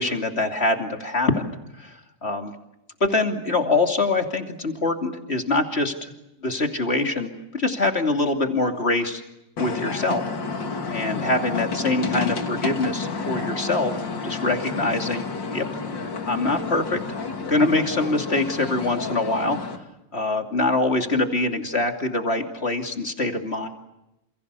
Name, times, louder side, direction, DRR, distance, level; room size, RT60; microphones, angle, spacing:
voice 1, 0.0-1.4 1.8-2.5 3.0-6.1 6.4-9.2 9.6-10.2 10.9-13.9 14.2-15.6 16.3-17.0 17.4-19.6 20.1-23.7, left 2 dB, 35° left, 4 dB, 3.0 m, -24 dB
sound 1, 9.6-19.8, left 4 dB, 80° left, 3.2 m, -30 dB
29.0 x 28.5 x 6.9 m, 0.89 s
omnidirectional pair, 2.0 m